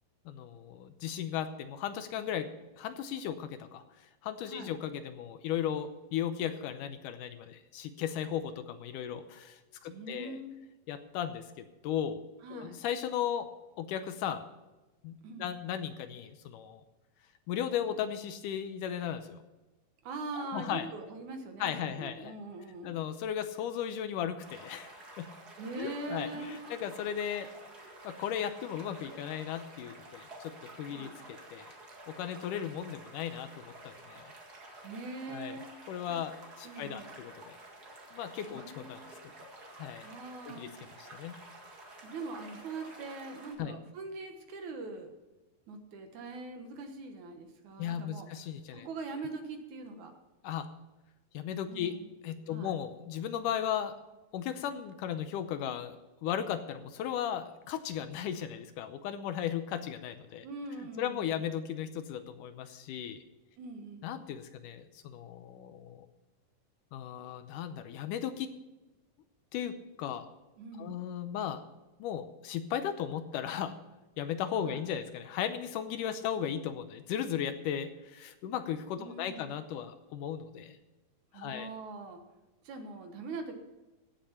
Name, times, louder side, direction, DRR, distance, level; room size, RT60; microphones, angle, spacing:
voice 1, 0.3-2.5 2.8-10.4 10.9-12.2 12.5-13.5 13.8-14.4 15.0-15.1 15.4-16.8 17.5-19.4 20.3-20.9 21.6-22.3 22.8-24.9 25.2-25.3 25.8-27.5 28.0-31.7 32.1-34.3 35.3-35.6 35.9-37.6 38.1-39.2 39.8-40.1 40.5-40.7 41.0-41.4 43.6-43.8 47.8-48.9 50.4-50.7 51.3-52.0 52.2-53.9 54.3-60.5 61.0-63.2 64.0-66.1 66.9-68.5 69.5-70.3 70.8-71.6 72.0-73.7 74.2-80.8 81.3-81.7, left 9 dB, 80° left, 10 dB, 2.2 m, -36 dB
voice 2, 9.9-10.5 12.4-12.8 15.2-15.5 20.0-23.0 25.6-26.7 30.9-31.2 34.8-35.7 36.1-36.2 36.6-37.2 38.4-39.1 40.0-40.7 42.0-45.1 45.7-50.1 51.7-52.1 52.5-52.7 60.4-61.4 63.6-64.2 70.6-71.1 74.6-74.8 79.0-79.5 81.3-82.2 82.6-83.6, right 3 dB, 65° right, 5 dB, 2.5 m, -42 dB
sound 1, 24.4-43.6, right 1 dB, 35° right, 1.9 m, -51 dB
16.0 x 7.6 x 5.7 m, 1.1 s
omnidirectional pair, 4.0 m